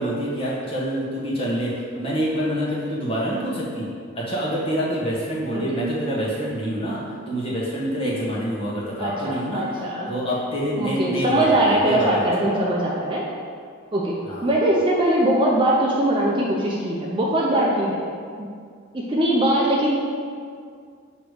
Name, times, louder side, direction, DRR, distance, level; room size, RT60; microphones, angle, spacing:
voice 1, 0.0-3.9 4.1-7.0 7.3-9.6 10.1-12.3 14.3-14.5, equal, 25° left, -6 dB, 1.2 m, -26 dB
voice 2, 9.0-10.1 10.7-13.3 13.9-14.2 14.4-18.0 18.4-18.5 18.9-20.2, right 1 dB, 25° right, -4 dB, 0.5 m, -21 dB
6.6 x 3.0 x 4.8 m, 2.2 s
head